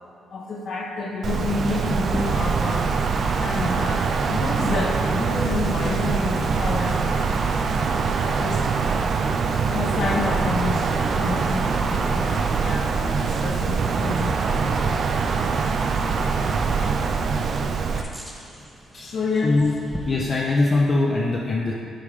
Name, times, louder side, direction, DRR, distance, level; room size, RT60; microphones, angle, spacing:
voice 1, 0.3-2.9 3.4-7.6 8.2-8.9 9.7-14.8 17.9-18.2 19.0-19.5, left 3 dB, 60° left, -1 dB, 1.0 m, -29 dB
Wind, 1.2-18.0, right 5 dB, 55° right, 0.5 m, -23 dB
Bird vocalization bird call bird song, 1.4-20.9, right 1 dB, 5° right, 0.9 m, -40 dB
sound 1, 9.8-12.9, equal, 15° left, 1.4 m, -37 dB
voice 2, 20.0-21.7, left 2 dB, 40° left, -3 dB, 0.7 m, -21 dB
9.8 x 3.5 x 5.0 m, 2.5 s
cardioid pair, 90°, 0 cm